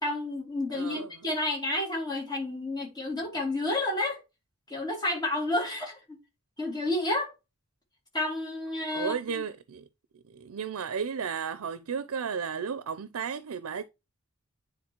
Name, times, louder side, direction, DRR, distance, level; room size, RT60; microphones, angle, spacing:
voice 1, 0.0-4.2 4.7-6.2 6.6-7.3 8.1-9.1, left 2 dB, 20° left, 2.6 m, -30 dB
voice 2, 0.7-1.1 8.9-9.8 10.3-13.8, right 6 dB, 80° right, 0.5 m, -33 dB
9.6 x 3.9 x 2.9 m
head